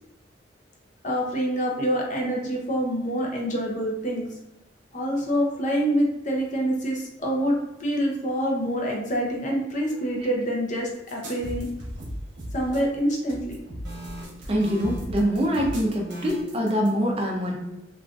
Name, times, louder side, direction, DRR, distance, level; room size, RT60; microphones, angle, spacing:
voice 1, 1.0-4.3 4.9-11.7 12.5-13.6, equal, 40° left, -1 dB, 0.6 m, -26 dB
sound 1, 11.1-16.9, equal, 65° right, 1.0 m, -36 dB
voice 2, 14.5-17.6, equal, 30° right, -1 dB, 0.5 m, -24 dB
3.5 x 2.4 x 2.4 m, 0.92 s
head